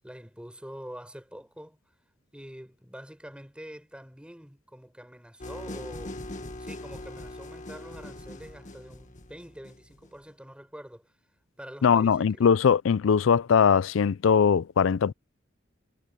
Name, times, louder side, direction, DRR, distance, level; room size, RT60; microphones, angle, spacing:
voice 1, 0.0-1.8 2.3-11.1 11.6-12.4, equal, 5° right, 4.8 m, -45 dB
sound 1, 5.4-10.2, left 1 dB, 40° left, 1.8 m, -41 dB
voice 2, 11.8-15.1, left 6 dB, 80° left, 0.4 m, -21 dB
head